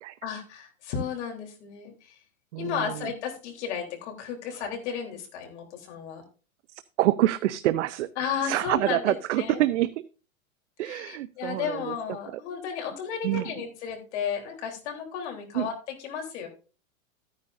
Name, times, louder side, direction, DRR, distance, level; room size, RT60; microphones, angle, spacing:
voice 1, 0.2-2.2 2.6-6.2 8.2-9.6 10.8-16.5, left 7 dB, 55° left, 2 dB, 3.6 m, -34 dB
voice 2, 2.5-2.9 7.0-8.1 8.4-9.9 10.8-12.0 13.2-13.5 15.5-15.7, right 15 dB, 60° right, 14 dB, 0.6 m, -26 dB
14.0 x 9.6 x 2.6 m, 0.35 s
supercardioid pair, 160°, 41 cm